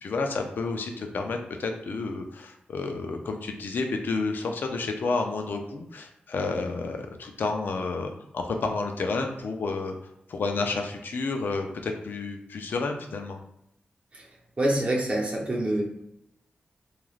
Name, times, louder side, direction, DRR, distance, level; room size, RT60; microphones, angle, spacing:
voice 1, 0.0-9.9 10.3-13.4, left 3 dB, 80° left, 4 dB, 0.4 m, -30 dB
voice 2, 14.6-15.8, right 1 dB, 40° right, -2 dB, 0.8 m, -26 dB
3.1 x 2.4 x 2.4 m, 0.78 s
wide cardioid pair, 75°, 3 cm